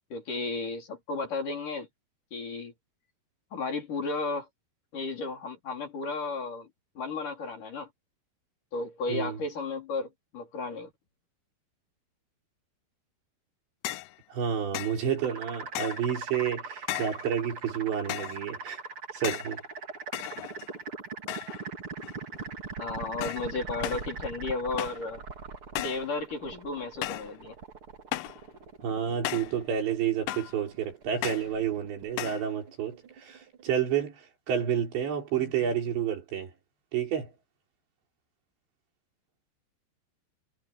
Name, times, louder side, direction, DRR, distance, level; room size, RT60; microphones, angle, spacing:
voice 1, 0.1-1.9 2.3-2.7 3.5-4.5 4.9-6.7 7.0-7.9 8.7-10.9 22.8-25.2 25.8-27.6, left 3 dB, 50° left, 5.7 m, -34 dB
sound 1, 13.9-14.2 14.7-15.0 15.8-16.1 16.9-17.3 18.1-18.4 19.2-19.6 20.1-20.8 21.3-21.7 22.0-22.4 23.2-23.5 23.8-24.1 24.8-25.1 25.8-26.1 27.0-27.3 28.1-28.4 29.3-29.6 30.3-30.6 31.2-31.5 32.2-32.5, left 16 dB, 75° left, 2.5 m, -35 dB
voice 2, 14.3-18.8 19.1-19.6 28.8-36.5 36.9-37.3, right 8 dB, 85° right, 6.9 m, -30 dB
sound 2, 15.2-33.9, right 4 dB, 35° right, 3.0 m, -42 dB
omnidirectional pair, 5.0 m